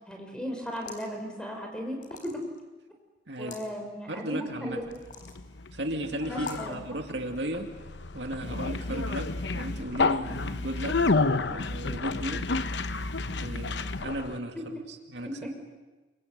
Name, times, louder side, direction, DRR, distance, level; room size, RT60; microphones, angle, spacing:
voice 1, 0.1-2.5 3.4-4.9 6.2-7.0 15.4-15.5, equal, 5° left, 3 dB, 5.0 m, -36 dB
sound 1, 0.7-1.2 2.0-2.6 3.4-3.7 4.9-5.4 6.4-6.7, left 3 dB, 45° left, 4.1 m, -42 dB
voice 2, 3.3-3.6 4.1-4.8 5.7-7.7 8.1-11.0 11.5-12.5 13.3-15.3, right 1 dB, 70° right, 4 dB, 2.4 m, -35 dB
Conversation, 4.9-14.4, left 3 dB, 70° left, 0.9 m, -30 dB
28.5 x 23.5 x 8.1 m, 1.2 s
head